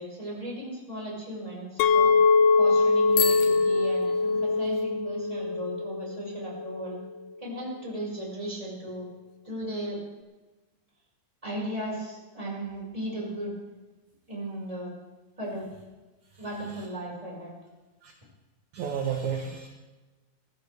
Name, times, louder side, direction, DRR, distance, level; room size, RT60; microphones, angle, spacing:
voice 1, 0.0-2.1 2.6-7.0 7.4-9.1 9.4-10.0 11.4-13.5 14.3-14.9 15.4-15.7 16.4-17.5, right 1 dB, 10° right, -5 dB, 5.4 m, -36 dB
Chink clink, 1.8-7.0, left 4 dB, 75° left, 2.1 m, -23 dB
Bicycle bell, 3.1-4.8, left 7 dB, 60° left, 1.9 m, -33 dB
voice 2, 18.7-19.7, right 7 dB, 65° right, 1 dB, 2.5 m, -31 dB
20.0 x 15.5 x 3.5 m, 1.2 s
omnidirectional pair, 4.0 m